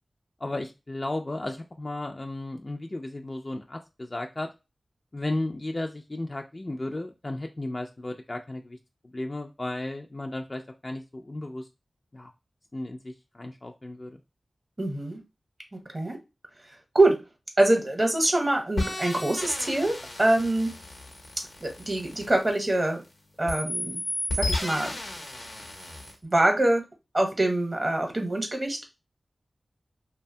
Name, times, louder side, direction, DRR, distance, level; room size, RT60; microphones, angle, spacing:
voice 1, 0.4-4.5 5.1-8.8 9.1-11.7 12.1-12.3 12.7-14.2, left 2 dB, 40° left, 3 dB, 0.3 m, -34 dB
voice 2, 14.8-15.2 15.7-16.2 16.9-17.2 17.6-20.8 21.6-23.0 23.4-24.0 24.4-25.0 26.2-26.8 27.1-28.8, right 1 dB, 40° right, 3 dB, 0.8 m, -24 dB
sound 1, 18.8-23.1 23.5-26.2, left 2 dB, 85° left, 0.9 m, -34 dB
2.7 x 2.2 x 2.6 m, 0.25 s
wide cardioid pair, 50°, 0 cm